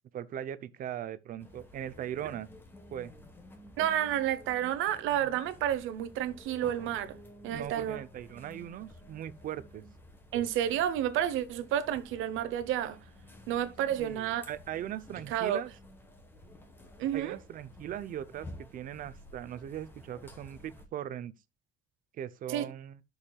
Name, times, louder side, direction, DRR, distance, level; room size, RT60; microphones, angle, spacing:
voice 1, 0.1-2.5 2.9-3.1 7.5-9.9 14.0-15.7 17.1-21.3 22.1-23.0, right 10 dB, 45° right, 0.7 m, -39 dB
sound 1, 1.4-20.9, left 1 dB, 10° left, 1.2 m, -52 dB
voice 2, 3.8-7.2 7.4-8.0 10.3-13.0 13.5-14.5 15.3-15.6 17.0-17.4 22.5-22.6, right 11 dB, 85° right, 0.9 m, -30 dB
11.5 x 6.5 x 2.3 m
cardioid pair, 170°, 20 cm